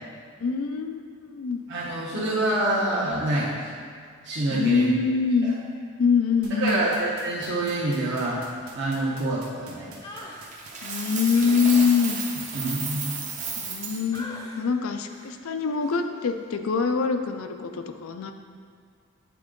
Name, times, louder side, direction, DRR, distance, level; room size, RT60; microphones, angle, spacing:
voice 1, 0.4-1.6 4.5-5.5 6.0-6.8 10.8-12.2 13.6-14.3 14.6-18.3, left 5 dB, 80° left, 7 dB, 0.4 m, -24 dB
voice 2, 1.7-3.6 4.2-4.9 5.4-5.5 6.5-8.4 8.7-10.1 12.5-13.1, right 1 dB, 55° right, -10 dB, 1.1 m, -26 dB
sound 1, 6.4-14.2, right 5 dB, 90° right, 0.9 m, -46 dB
sound 2, 10.0-10.5 11.3-13.8 14.1-14.7 15.1-15.4 15.8-16.1, left 1 dB, 15° left, 0.5 m, -44 dB
Coin (dropping), 10.5-14.0, right 5 dB, 35° right, 0.7 m, -33 dB
8.4 x 3.7 x 3.7 m, 2.1 s
head